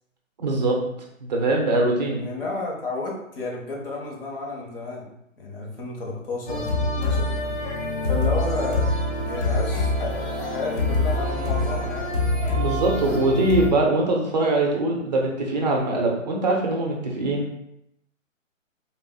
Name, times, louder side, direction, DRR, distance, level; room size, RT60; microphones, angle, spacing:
voice 1, 0.4-0.8 1.2-2.2 12.5-17.5, right 2 dB, 35° right, 0 dB, 0.5 m, -22 dB
voice 2, 2.2-5.1 5.4-7.3 8.1-8.9 9.2-12.3 17.2-17.4, left 3 dB, 45° left, -1 dB, 0.8 m, -32 dB
sound 1, 6.5-13.7, left 2 dB, 65° left, 1.1 m, -25 dB
3.4 x 2.5 x 2.2 m, 0.78 s
hypercardioid pair, 150°, 40 cm